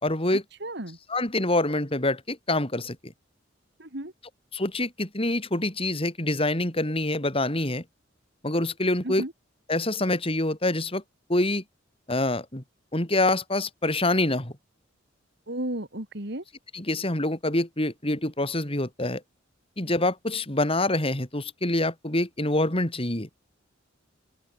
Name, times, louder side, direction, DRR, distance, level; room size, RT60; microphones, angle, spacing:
voice 1, 0.0-0.4 1.1-3.1 4.5-7.8 8.4-9.2 9.7-11.0 11.3-11.6 12.1-12.6 12.9-14.5 16.7-19.2 19.8-23.3, left 2 dB, 30° left, 4.0 m, -26 dB
voice 2, 0.6-1.0 3.8-4.1 9.0-9.3 15.5-16.4, right 1 dB, 60° right, 3.8 m, -33 dB
open air
head